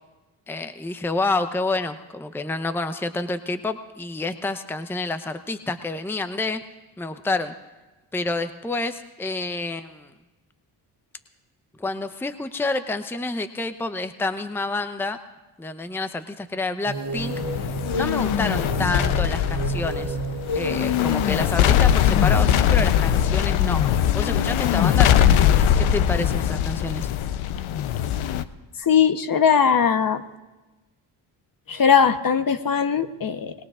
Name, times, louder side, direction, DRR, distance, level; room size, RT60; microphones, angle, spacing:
voice 1, 0.5-6.6 7.0-7.5 8.1-10.1 11.8-15.2 15.6-17.4 17.9-20.2 20.5-27.1, left 2 dB, 5° left, 10 dB, 0.8 m, -28 dB
sound 1, 16.8-23.3, right 1 dB, 50° right, 2.3 m, -31 dB
sound 2, 17.2-28.4, left 10 dB, 70° left, 0.8 m, -21 dB
voice 2, 28.9-30.2 31.7-33.5, left 7 dB, 45° left, 9 dB, 1.0 m, -19 dB
25.0 x 20.0 x 2.5 m, 1.2 s
supercardioid pair, 55°, 50 cm